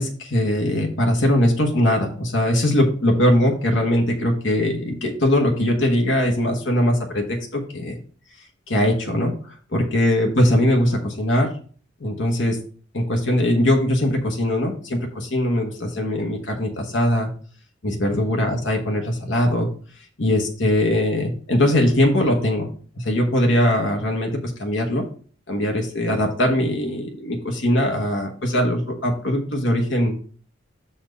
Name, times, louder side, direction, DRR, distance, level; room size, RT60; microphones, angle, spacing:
voice 1, 0.0-8.0 8.7-11.5 12.0-12.6 12.9-17.3 17.8-19.7 20.2-22.7 23.0-24.3 24.6-25.0 25.5-30.2, left 1 dB, 70° left, 2 dB, 1.3 m, -21 dB
6.3 x 4.4 x 5.2 m, 0.43 s
head